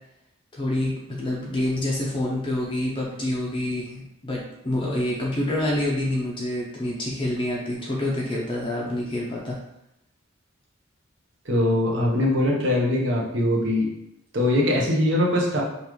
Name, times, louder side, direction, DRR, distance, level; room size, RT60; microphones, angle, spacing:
voice 1, 0.5-9.6, left 1 dB, 25° left, -4 dB, 0.5 m, -27 dB
voice 2, 11.5-13.9 14.3-15.6, left 1 dB, 60° right, -1 dB, 0.9 m, -22 dB
5.4 x 2.5 x 3.1 m, 0.83 s
head